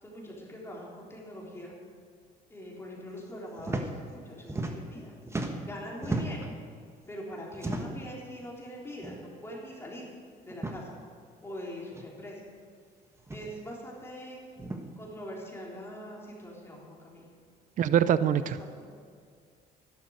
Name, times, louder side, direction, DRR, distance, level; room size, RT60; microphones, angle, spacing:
voice 1, 0.0-1.7 2.5-5.1 5.6-6.5 7.1-10.1 10.4-11.0 11.4-12.4 13.3-14.5 15.0-17.2 18.4-18.9, equal, 15° left, -4 dB, 3.6 m, -43 dB
sound 1, 3.6-3.9 4.2-5.0 5.3-6.5 7.5-8.1 9.0-9.2 9.5-9.6 10.5-10.8 11.9-12.0 13.2-13.5 14.6-14.8, right 2 dB, 15° right, 1.4 m, -34 dB
voice 2, 17.8-18.6, right 9 dB, 50° right, 14 dB, 0.5 m, -24 dB
12.0 x 12.0 x 6.5 m, 2.1 s
cardioid pair, 110°, 17 cm